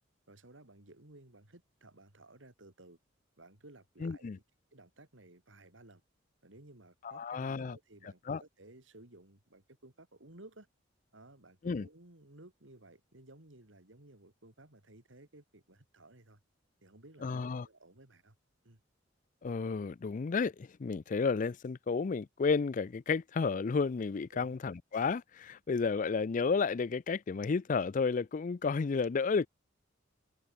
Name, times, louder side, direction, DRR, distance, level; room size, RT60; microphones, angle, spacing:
voice 1, 0.3-3.0 3.4-4.4 4.7-6.0 6.4-10.7 11.1-16.4 16.8-18.4 18.6-18.8 24.3-24.6, right 2 dB, 75° right, 3.3 m, -57 dB
voice 2, 4.0-4.4 7.0-7.8 8.3-8.4 11.6-11.9 17.2-17.7 19.4-29.5, left 5 dB, 40° left, 0.4 m, -32 dB
head